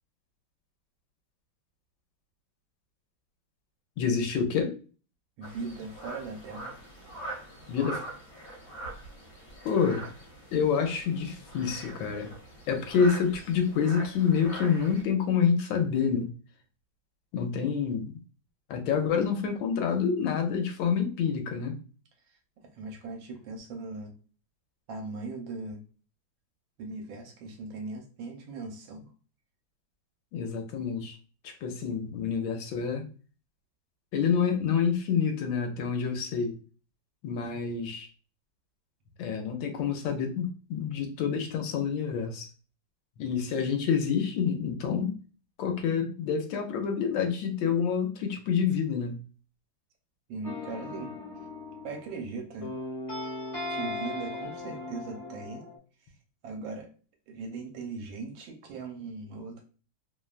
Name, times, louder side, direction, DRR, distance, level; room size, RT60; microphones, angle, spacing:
voice 1, 4.0-4.8 7.7-8.0 9.6-10.1 10.5-12.3 12.7-16.3 17.3-18.2 18.7-21.8 30.3-31.2 31.4-33.0 34.1-36.6 37.2-38.1 39.2-42.5 43.2-45.2 45.6-49.2, left 6 dB, 80° left, 5 dB, 1.3 m, -27 dB
sound 1, 5.4-15.0, right 1 dB, 50° left, 1.3 m, -43 dB
voice 2, 5.4-6.7 22.7-24.1 24.9-25.8 26.8-29.1 37.5-37.6 50.3-51.1 51.8-52.7 53.7-55.6 56.4-56.9 57.3-59.6, right 3 dB, 75° right, 3 dB, 1.4 m, -39 dB
sound 2, 50.4-52.3 52.6-55.8, left 2 dB, 30° left, 0.6 m, -38 dB
3.3 x 2.1 x 2.3 m, 0.36 s
omnidirectional pair, 2.2 m